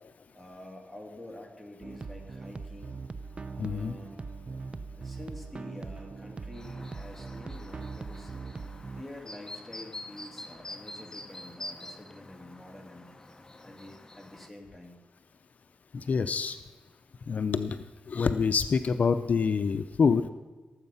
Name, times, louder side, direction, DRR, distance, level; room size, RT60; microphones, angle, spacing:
voice 1, 0.3-3.0 3.5-4.2 4.9-8.3 8.9-13.1 13.6-15.0, left 1 dB, ahead, 0 dB, 3.1 m, -47 dB
sound 1, 1.8-9.0, right 4 dB, 40° right, 0.6 m, -41 dB
voice 2, 3.6-3.9 15.9-16.6 17.3-20.3, left 5 dB, 65° left, 10 dB, 0.5 m, -26 dB
Chirp tweet, 6.5-14.5, left 2 dB, 20° left, 0.9 m, -46 dB
17.5 x 8.0 x 5.6 m, 1.3 s
cardioid pair, 70°, 3 cm